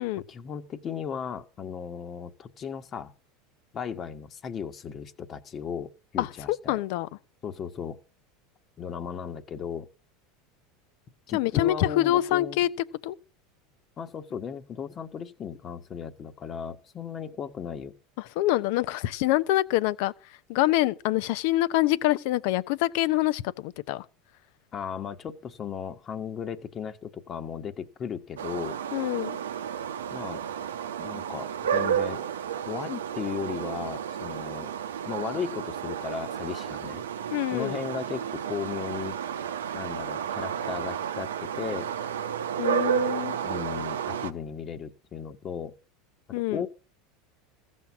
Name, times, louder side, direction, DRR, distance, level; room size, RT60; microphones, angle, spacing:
voice 1, 0.3-3.1 3.7-6.8 7.4-8.0 8.8-9.9 11.3-12.6 14.0-17.9 24.7-28.8 30.1-30.4 31.0-32.2 32.7-34.7 35.0-37.0 37.5-39.2 39.7-41.9 43.4-45.7 46.3-46.7, left 7 dB, 35° left, 1.3 m, -36 dB
voice 2, 6.2-7.1 11.3-12.7 13.0-13.2 18.4-20.1 20.5-24.0 28.9-29.4 37.3-37.8 42.6-43.3 46.3-46.6, left 15 dB, 65° left, 0.7 m, -25 dB
sound 1, 28.4-44.3, right 8 dB, 85° right, 0.8 m, -32 dB
15.0 x 6.4 x 7.1 m
hypercardioid pair, 90°, 0 cm